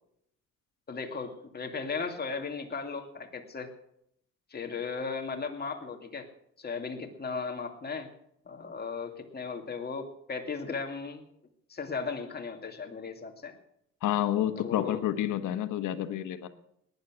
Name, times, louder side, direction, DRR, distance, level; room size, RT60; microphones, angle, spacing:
voice 1, 0.9-3.7 4.5-6.3 6.6-8.1 8.5-11.2 11.7-13.5 14.6-15.0, left 5 dB, 35° left, 3 dB, 2.4 m, -36 dB
voice 2, 14.0-16.5, left 12 dB, 85° left, 10 dB, 1.3 m, -29 dB
18.5 x 10.5 x 6.3 m, 0.74 s
cardioid pair, 90°, 30 cm